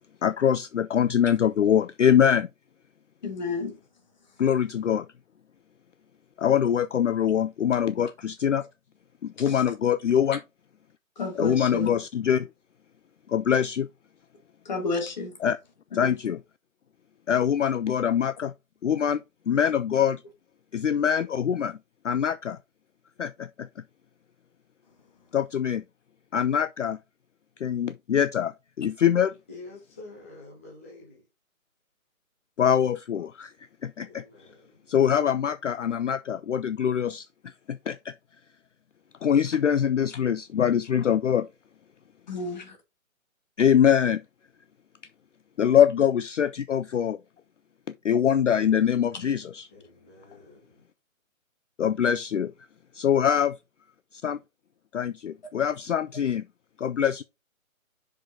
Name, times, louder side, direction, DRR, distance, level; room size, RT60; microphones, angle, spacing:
voice 1, 0.2-2.5 4.4-5.1 6.4-8.6 9.2-10.4 11.4-12.5 13.3-13.9 15.4-15.6 15.9-16.4 17.3-18.5 18.8-19.2 19.5-20.2 20.7-21.8 22.0-22.6 23.2-23.5 25.3-25.8 26.3-27.0 27.6-28.5 28.8-29.3 32.6-33.5 33.8-34.2 34.9-37.2 37.7-38.0 39.2-41.5 43.6-44.2 45.6-47.2 48.0-49.7 51.8-52.5 52.9-53.5 54.2-54.4 54.9-56.4 56.8-57.2, left 8 dB, 60° left, 0.5 m, -23 dB
voice 2, 3.2-3.8 9.5-9.6 11.2-11.9 14.6-15.3 15.9-16.1 42.3-42.8, left 3 dB, 30° left, 1.6 m, -31 dB
voice 3, 29.5-31.2 34.0-34.9 49.7-50.8, left 2 dB, 10° left, 0.8 m, -47 dB
6.1 x 5.1 x 3.8 m
hypercardioid pair, 170°, 42 cm